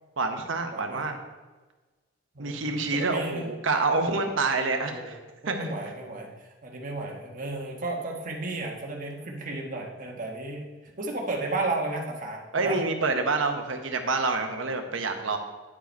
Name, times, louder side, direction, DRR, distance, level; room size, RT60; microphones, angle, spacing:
voice 1, 0.2-1.2 2.4-5.2 5.5-5.7 12.5-15.4, right 3 dB, 85° right, 5 dB, 0.9 m, -27 dB
voice 2, 0.7-1.1 2.3-3.5 4.8-5.2 5.4-10.7 11.0-12.8, right 2 dB, 45° right, 0 dB, 1.3 m, -33 dB
9.9 x 4.7 x 4.5 m, 1.2 s
head